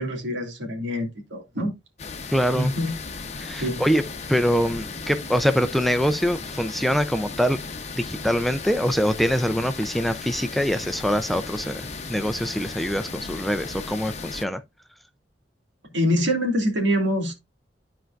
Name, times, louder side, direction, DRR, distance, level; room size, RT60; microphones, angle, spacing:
voice 1, 0.0-1.7 2.5-2.9 3.6-3.8 15.9-17.3, equal, 85° right, 2.4 m, -25 dB
sound 1, 2.0-14.4, left 4 dB, 35° left, 0.8 m, -36 dB
voice 2, 2.3-2.7 3.4-4.0 4.3-7.6 8.0-11.8 12.1-14.6, equal, ahead, 0.4 m, -24 dB
13.0 x 4.6 x 2.5 m
head